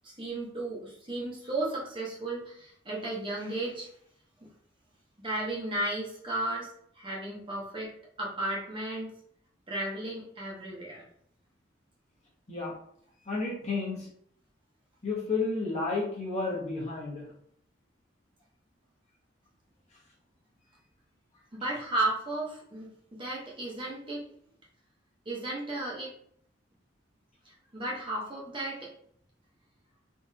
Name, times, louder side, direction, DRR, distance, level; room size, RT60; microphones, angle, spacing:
voice 1, 0.0-3.9 5.2-6.7 6.9-7.9 8.2-9.1 9.7-11.0 21.5-24.2 25.3-26.1 27.4-28.9, right 2 dB, 25° right, -4 dB, 0.8 m, -34 dB
voice 2, 13.3-14.1 15.0-17.2, left 3 dB, 35° left, -4 dB, 1.0 m, -31 dB
3.8 x 2.5 x 2.7 m, 0.66 s
head